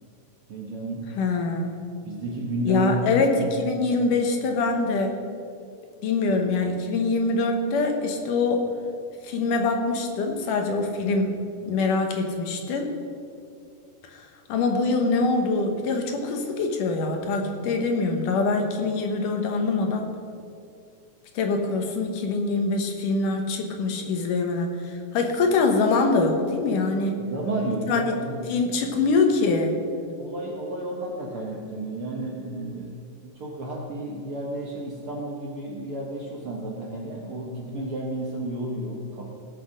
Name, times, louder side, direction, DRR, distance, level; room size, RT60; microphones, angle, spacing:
voice 1, 0.5-1.1 2.0-3.4 27.2-28.6 28.9-29.0 30.2-39.3, right 1 dB, 60° right, -2 dB, 1.6 m, -32 dB
voice 2, 1.2-1.8 2.7-5.2 6.0-8.6 9.2-12.9 14.1-14.2 14.5-20.1 21.3-27.2 27.9-28.0 28.5-29.8, left 3 dB, 70° left, 4 dB, 2.6 m, -24 dB
17.5 x 6.4 x 6.4 m, 2.3 s
omnidirectional pair, 3.9 m